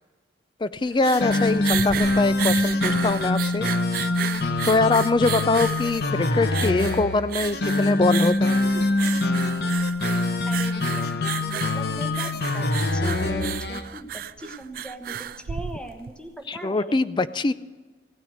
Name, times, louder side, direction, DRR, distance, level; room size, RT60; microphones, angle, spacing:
voice 1, 0.6-3.7 4.7-8.6 16.5-17.5, left 3 dB, 25° left, 15 dB, 0.4 m, -23 dB
sound 1, 0.7-16.2, right 10 dB, 55° right, 0.3 m, -33 dB
sound 2, 1.0-13.9, left 2 dB, 60° left, 0.8 m, -24 dB
voice 2, 10.5-12.7 12.9-17.0, equal, 5° left, 5 dB, 1.2 m, -38 dB
16.5 x 9.2 x 6.4 m, 1.3 s
head